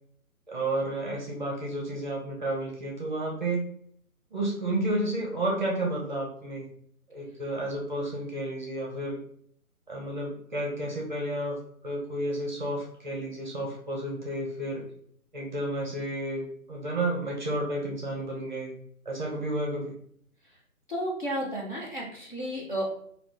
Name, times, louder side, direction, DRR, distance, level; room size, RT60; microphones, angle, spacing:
voice 1, 0.5-3.7 4.3-6.7 7.1-9.2 9.9-11.6 11.8-14.8 15.3-18.7 19.1-19.9, right 1 dB, 30° right, -2 dB, 0.7 m, -31 dB
voice 2, 20.9-22.8, equal, 35° left, -4 dB, 0.5 m, -32 dB
2.4 x 2.2 x 3.5 m, 0.63 s
figure-of-eight pair, 145°, 45 cm